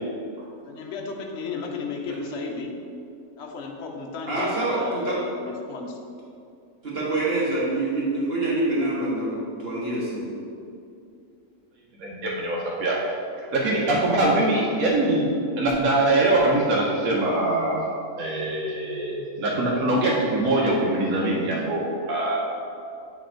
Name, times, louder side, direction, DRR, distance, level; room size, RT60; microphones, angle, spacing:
voice 1, 0.6-2.7 3.4-5.1 5.3-6.0, left 4 dB, 55° left, 1 dB, 0.9 m, -34 dB
voice 2, 4.3-5.2 6.8-10.3, right 2 dB, 45° right, -6 dB, 1.3 m, -26 dB
voice 3, 12.0-13.0 13.4-15.2 15.6-17.8 18.2-22.4, right 2 dB, 70° right, -4 dB, 1.2 m, -23 dB
7.5 x 3.4 x 4.4 m, 2.5 s
omnidirectional pair, 1.6 m